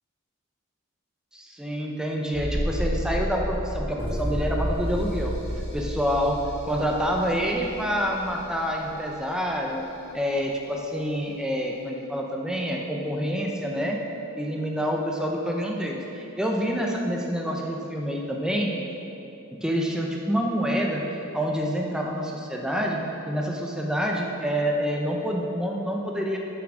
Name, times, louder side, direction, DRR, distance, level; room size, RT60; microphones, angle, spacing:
voice 1, 1.3-5.3 5.7-6.4 6.7-9.8 10.1-14.0 14.4-18.7 19.6-21.0 21.3-23.0 23.3-26.4, equal, 5° right, -1 dB, 0.7 m, -27 dB
sound 1, 2.3-9.1 9.4-9.5, equal, 25° right, 2.1 m, -31 dB
7.5 x 6.1 x 6.1 m, 2.9 s
head